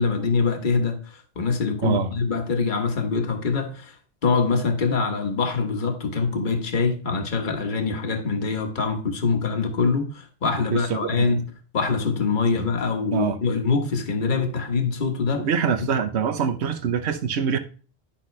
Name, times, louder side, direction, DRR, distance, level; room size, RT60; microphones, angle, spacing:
voice 1, 0.0-3.9 4.2-11.4 11.7-15.5, left 4 dB, 45° left, 1.4 m, -24 dB
voice 2, 1.8-2.1 10.7-11.3 12.5-12.7 13.1-13.4 15.3-17.6, right 7 dB, 70° right, 1.1 m, -24 dB
12.0 x 5.9 x 3.2 m
omnidirectional pair, 1.2 m